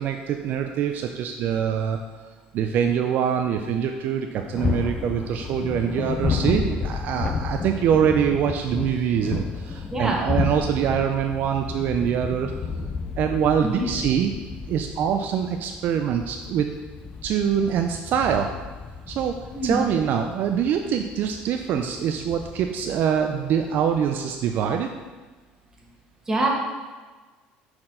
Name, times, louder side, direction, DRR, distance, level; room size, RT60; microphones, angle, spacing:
voice 1, 0.0-2.0 2.5-12.5 13.2-14.4 14.7-16.7 17.2-18.5 19.1-19.4 19.6-24.9, right 8 dB, 60° right, 5 dB, 0.4 m, -24 dB
sound 1, 4.5-24.1, left 5 dB, 30° left, 0.4 m, -32 dB
voice 2, 9.9-10.2 13.6-13.9 19.5-19.8 26.3-26.5, right 1 dB, 15° right, -2 dB, 1.3 m, -24 dB
5.9 x 4.3 x 3.8 m, 1.3 s
cardioid pair, 115°, 4 cm